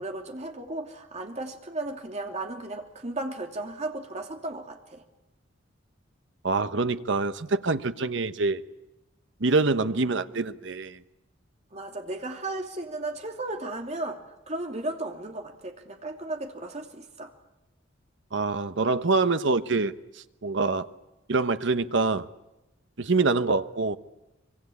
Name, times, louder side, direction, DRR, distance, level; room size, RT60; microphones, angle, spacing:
voice 1, 0.0-5.0 11.7-17.3, right 2 dB, 35° right, 3 dB, 2.8 m, -35 dB
voice 2, 6.4-8.6 9.4-11.0 18.3-19.9 20.4-20.9 21.3-22.3 23.0-24.0, right 3 dB, 65° right, 11 dB, 1.0 m, -25 dB
24.5 x 24.0 x 8.6 m, 1.0 s
head